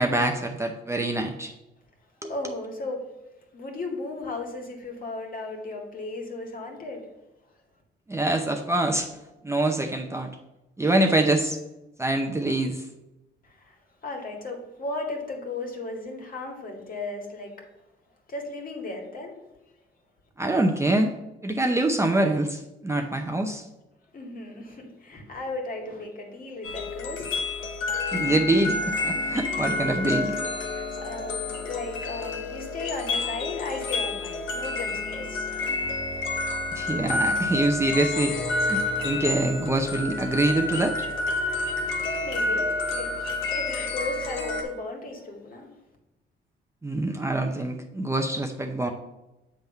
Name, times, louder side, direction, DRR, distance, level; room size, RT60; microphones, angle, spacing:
voice 1, 0.0-1.5 2.2-2.3 8.1-9.1 9.4-10.3 10.8-11.6 12.0-12.9 20.4-21.1 21.4-23.6 28.1-30.3 36.7-41.0 46.8-48.9, right 2 dB, 15° right, 3 dB, 0.7 m, -25 dB
voice 2, 2.3-3.1 3.5-7.1 13.4-17.6 18.3-19.3 24.1-27.5 30.7-35.6 41.6-43.1 43.5-45.7, left 2 dB, 45° left, 1 dB, 1.9 m, -35 dB
sound 1, 26.6-44.6, left 3 dB, 80° left, 1.1 m, -29 dB
7.7 x 3.6 x 5.5 m, 0.97 s
cardioid pair, 90°, 20 cm